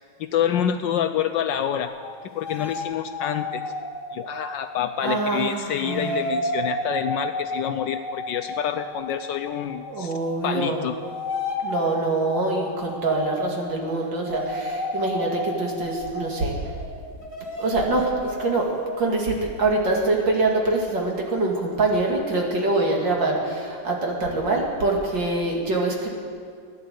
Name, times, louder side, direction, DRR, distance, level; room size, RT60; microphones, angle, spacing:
voice 1, 0.2-1.9 2.3-3.6 4.1-10.1 10.4-11.0, left 9 dB, 75° left, 8 dB, 1.1 m, -27 dB
sound 1, 1.8-5.3 5.7-19.0, left 1 dB, 25° left, 1.5 m, -33 dB
voice 2, 5.0-6.2 9.9-10.8 11.6-16.5 17.6-18.6 19.0-26.1, right 2 dB, 60° right, 0 dB, 2.9 m, -24 dB
15.5 x 10.5 x 8.1 m, 2.2 s
omnidirectional pair, 2.3 m